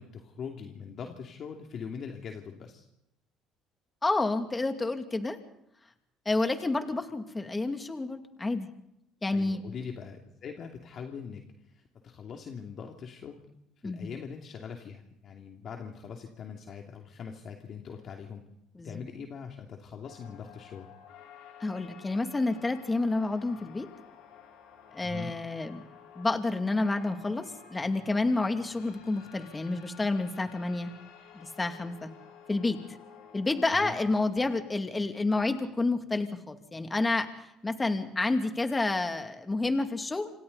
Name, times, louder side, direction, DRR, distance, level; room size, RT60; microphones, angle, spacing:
voice 1, 0.0-2.9 9.3-13.4 13.8-18.4 18.8-20.9 25.0-25.3 33.7-33.9, left 6 dB, 50° left, 2 dB, 2.7 m, -42 dB
voice 2, 4.0-5.4 6.3-8.7 9.2-9.6 13.8-14.1 18.8-19.0 21.6-23.9 24.9-25.8 26.2-30.9 31.3-32.1 32.5-33.0 33.3-37.3 37.6-40.3, left 2 dB, 20° left, 6 dB, 2.5 m, -29 dB
sound 1, 20.0-33.7, left 8 dB, 75° left, 6.2 m, -52 dB
28.0 x 25.0 x 4.1 m, 0.82 s
supercardioid pair, 85°, 0 cm